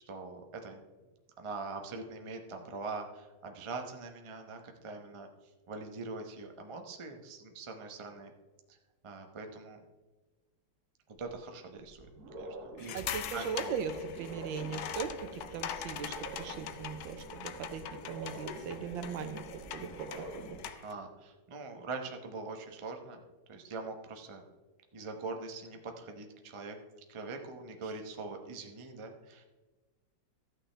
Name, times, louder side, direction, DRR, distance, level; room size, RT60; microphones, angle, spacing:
voice 1, 0.1-0.8 1.4-5.3 5.7-8.3 8.7-8.8 9.0-9.8 11.1-12.1 12.4-13.0 13.3-13.7 20.6-23.2 23.5-24.4 24.9-26.8 27.1-29.4, right 3 dB, 35° right, 4 dB, 0.5 m, -43 dB
sound 1, 11.2-11.3 11.8-20.6, right 2 dB, 55° right, 1.5 m, -47 dB
sound 2, 12.8-20.9, left 10 dB, 70° left, 1.0 m, -43 dB
voice 2, 12.9-20.5, right 6 dB, 80° right, 9 dB, 1.5 m, -39 dB
13.5 x 8.8 x 3.3 m, 1.2 s
omnidirectional pair, 2.1 m